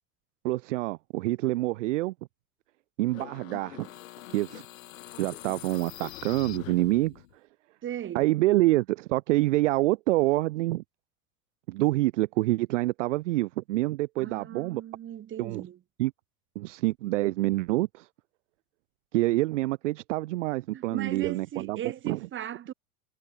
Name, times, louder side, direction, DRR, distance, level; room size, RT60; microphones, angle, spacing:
voice 1, 0.4-2.1 3.0-3.9 4.3-4.6 5.2-7.1 8.1-10.8 11.7-14.8 15.4-15.7 16.0-16.1 16.6-18.1 19.1-22.2, right 18 dB, 55° right, 0.7 m, -26 dB
sound 1, 3.1-7.3, left 15 dB, 60° left, 3.8 m, -44 dB
voice 2, 7.8-8.2 14.2-15.8 20.7-22.7, right 10 dB, 25° right, 2.2 m, -37 dB
figure-of-eight pair, 90°, 45 cm